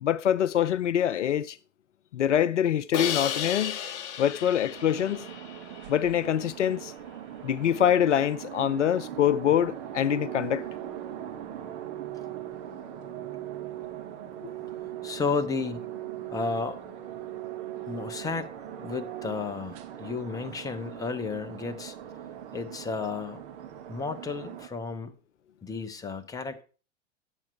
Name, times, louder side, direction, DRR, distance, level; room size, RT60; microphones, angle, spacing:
voice 1, 0.0-1.6 2.1-3.8 4.2-5.3 5.9-6.9 7.4-10.6, left 10 dB, 75° left, 0.5 m, -25 dB
Crash cymbal, 2.9-6.0, left 9 dB, 40° left, 0.9 m, -34 dB
sound 1, 4.7-24.7, right 10 dB, 45° right, 1.1 m, -42 dB
Organ, 9.3-20.3, right 14 dB, 70° right, 4.6 m, -41 dB
voice 2, 15.0-15.9 16.3-16.8 17.9-22.0 22.5-23.4 23.9-25.1 25.6-26.6, left 4 dB, 10° left, 0.7 m, -33 dB
9.9 x 7.2 x 4.7 m
figure-of-eight pair, 90°, 37 cm